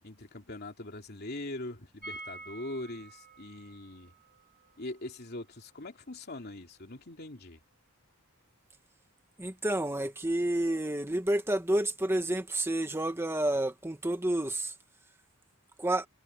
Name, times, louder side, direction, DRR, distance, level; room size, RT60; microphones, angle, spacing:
voice 1, 0.0-4.1 4.8-7.6, left 2 dB, 50° left, 3.0 m, -42 dB
sound 1, 2.0-7.8 8.0-8.1 8.4-8.5, right 2 dB, 40° right, 3.7 m, -50 dB
voice 2, 9.4-14.7 15.8-16.1, right 1 dB, 10° right, 1.4 m, -29 dB
head